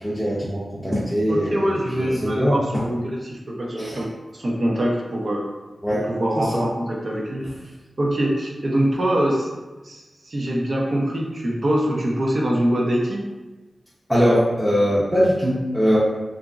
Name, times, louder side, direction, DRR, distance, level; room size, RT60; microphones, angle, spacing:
voice 1, 0.0-2.8 3.8-4.0 5.8-6.1 6.4-6.7 14.1-16.0, equal, 5° right, -9 dB, 0.6 m, -21 dB
voice 2, 1.3-4.1 4.3-5.4 6.1-7.5 8.0-9.5 9.8-13.2, right 1 dB, 60° right, -2 dB, 0.5 m, -23 dB
2.9 x 2.4 x 2.4 m, 1.2 s
wide cardioid pair, 75°, 0 cm